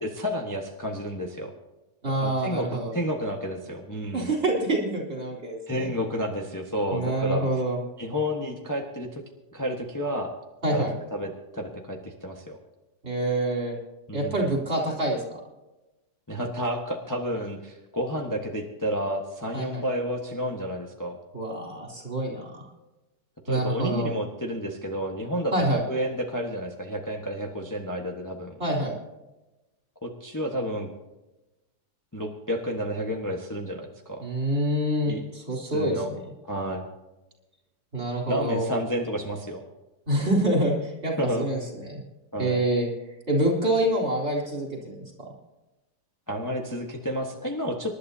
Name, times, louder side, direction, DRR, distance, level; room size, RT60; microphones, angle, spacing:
voice 1, 0.0-1.5 2.2-4.3 5.7-7.5 8.0-9.2 9.5-10.3 10.7-12.6 14.1-14.5 16.3-21.2 23.4-28.5 30.0-30.9 32.1-34.2 35.1-35.2 35.7-36.1 36.5-36.8 38.3-39.6 41.2-41.5 42.3-42.6 46.3-47.9, equal, 10° left, 0 dB, 1.3 m, -30 dB
voice 2, 2.0-2.9 4.1-5.9 6.9-7.8 10.6-10.9 13.0-13.7 14.1-15.4 19.5-19.8 21.3-22.7 23.5-24.1 25.5-25.8 28.6-29.0 34.2-36.0 37.9-38.7 40.1-42.0 42.4-42.9 43.3-45.3, right 1 dB, 40° right, -1 dB, 3.9 m, -26 dB
27.0 x 11.5 x 2.8 m, 1.0 s
omnidirectional pair, 1.8 m